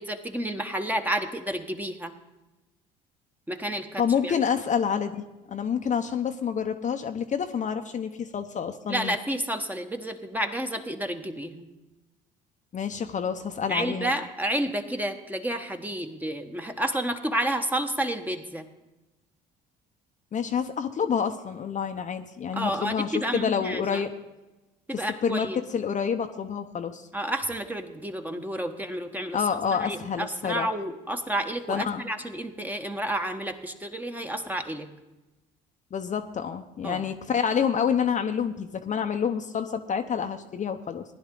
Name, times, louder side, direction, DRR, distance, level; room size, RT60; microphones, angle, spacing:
voice 1, 0.0-2.1 3.5-4.3 8.9-11.7 13.7-18.7 22.5-24.0 24.9-25.6 27.1-29.4 29.7-34.9 36.8-37.0, right 1 dB, 10° right, 6 dB, 1.3 m, -30 dB
voice 2, 4.0-9.1 12.7-14.1 20.3-24.1 24.9-27.1 29.3-30.7 31.7-32.0 35.9-41.0, left 7 dB, 40° left, 6 dB, 0.9 m, -28 dB
16.0 x 10.5 x 3.8 m, 1.0 s
hypercardioid pair, 70°, 20 cm